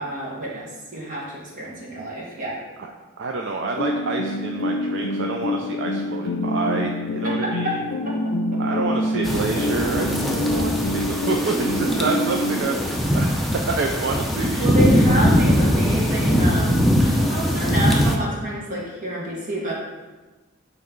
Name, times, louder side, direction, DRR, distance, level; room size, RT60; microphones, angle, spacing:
voice 1, 0.0-2.6 7.2-7.8 8.0-8.6 11.5-12.2 14.6-19.7, right 1 dB, 45° right, -5 dB, 1.8 m, -28 dB
voice 2, 3.2-7.8 8.6-14.6, right 3 dB, 65° right, 1 dB, 0.5 m, -28 dB
sound 1, 3.6-12.6, left 1 dB, 75° left, 0.5 m, -26 dB
sound 2, 9.2-18.2, equal, ahead, 0.6 m, -21 dB
8.7 x 3.2 x 3.9 m, 1.2 s
head